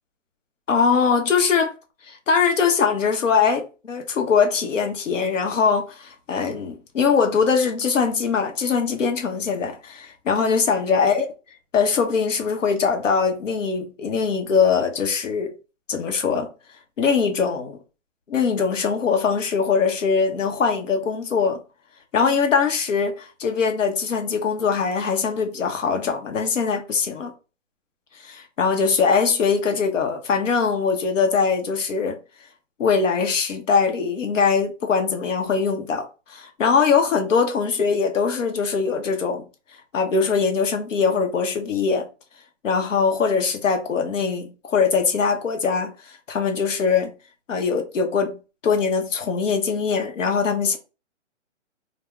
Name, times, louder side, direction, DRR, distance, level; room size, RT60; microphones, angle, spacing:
voice 1, 0.7-1.7 2.1-11.2 11.7-15.5 15.9-16.5 17.0-17.8 18.3-21.6 22.1-27.3 28.2-32.2 32.8-39.4 39.9-42.1 42.6-47.1 47.5-48.4 48.6-50.8, left 5 dB, 85° left, 0.9 m, -22 dB
2.2 x 2.2 x 3.5 m
hypercardioid pair, 160°, 37 cm